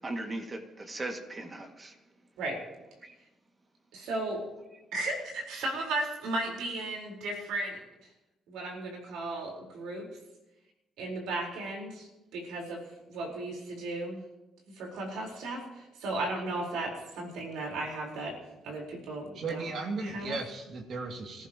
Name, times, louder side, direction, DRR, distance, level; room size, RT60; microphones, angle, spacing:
voice 1, 0.0-2.0 3.0-3.1, right 2 dB, 30° right, 4 dB, 2.2 m, -38 dB
voice 2, 3.9-4.4 4.9-7.8 8.5-10.1 11.0-12.8 13.1-14.2 14.8-18.3 18.6-19.7 20.0-20.4, right 2 dB, 90° right, -1 dB, 4.4 m, -35 dB
voice 3, 19.3-21.5, right 3 dB, 65° right, 3 dB, 2.6 m, -36 dB
27.0 x 14.5 x 3.0 m, 1.0 s
cardioid pair, 90°, 0 cm